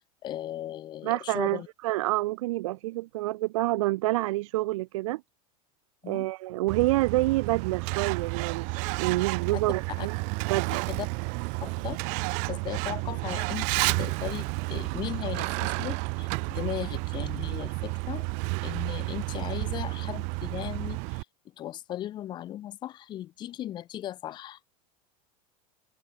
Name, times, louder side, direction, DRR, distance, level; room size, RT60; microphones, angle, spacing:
voice 1, 0.2-1.7 6.0-6.3 9.5-9.6 10.0-10.1 10.9-11.1 11.6-12.0 12.5-18.3 18.6-21.2 21.6-24.6, left 12 dB, 25° left, 4.7 m, -37 dB
voice 2, 1.0-5.2 6.1-10.2 10.5-10.9, right 18 dB, 65° right, 1.6 m, -28 dB
Truck, 6.7-21.2, right 34 dB, 40° right, 1.8 m, -31 dB
supercardioid pair, 180°, 18 cm